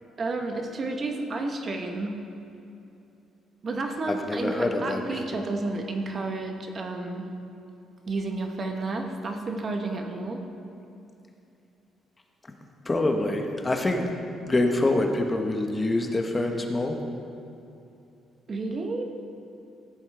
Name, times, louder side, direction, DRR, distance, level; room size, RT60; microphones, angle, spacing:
voice 1, 0.2-2.2 3.6-7.3 8.0-10.5 18.5-19.0, right 2 dB, 40° right, 4 dB, 1.2 m, -31 dB
voice 2, 4.1-5.0 5.3-5.4 12.8-14.1 14.4-17.0, left 2 dB, 25° left, 4 dB, 1.2 m, -25 dB
15.0 x 8.4 x 3.5 m, 2.7 s
cardioid pair, 80°, 0 cm